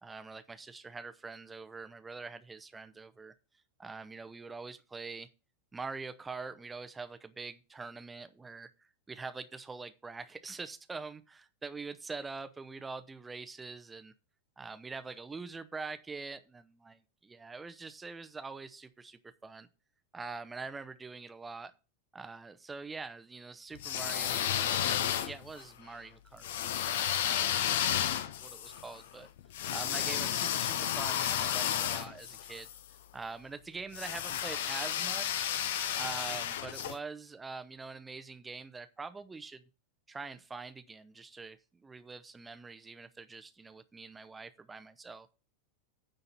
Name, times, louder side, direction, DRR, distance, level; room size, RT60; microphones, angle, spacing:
voice 1, 0.0-3.3 3.8-5.3 5.7-14.1 14.6-19.7 20.1-21.7 22.1-27.0 27.4-28.1 28.4-29.3 29.7-32.7 33.1-35.5 36.0-39.6 40.1-45.3, right 4 dB, 10° right, 11 dB, 0.8 m, -44 dB
sound 1, 23.7-25.6 26.4-32.8 33.9-37.0, left 10 dB, 55° left, 0.7 m, -32 dB
9.7 x 4.0 x 7.4 m, 0.32 s
figure-of-eight pair, 90°, 0 cm